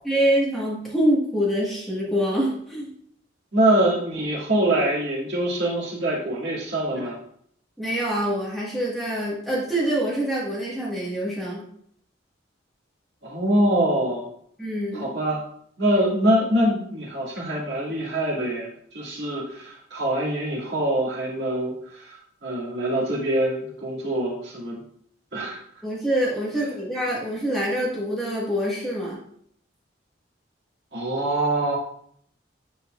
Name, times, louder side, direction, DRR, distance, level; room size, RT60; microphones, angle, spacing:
voice 1, 0.0-2.9 7.8-11.6 14.6-15.1 25.8-29.2, equal, ahead, -6 dB, 1.6 m, -25 dB
voice 2, 3.5-7.2 13.2-14.3 14.9-15.4 15.8-18.7 18.9-24.8 25.3-25.6 30.9-31.8, right 1 dB, 60° right, -5 dB, 2.0 m, -24 dB
9.4 x 4.2 x 2.4 m, 0.66 s
head